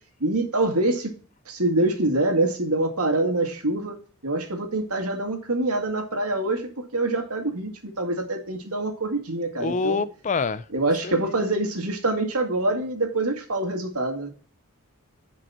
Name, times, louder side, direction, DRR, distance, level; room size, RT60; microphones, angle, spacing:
voice 1, 0.2-1.1 1.5-4.0 4.2-10.0 10.7-14.3, right 2 dB, 80° right, 3 dB, 2.1 m, -25 dB
voice 2, 9.6-10.6 11.0-11.3, left 4 dB, 35° left, 15 dB, 0.4 m, -26 dB
11.0 x 5.4 x 4.2 m, 0.40 s
head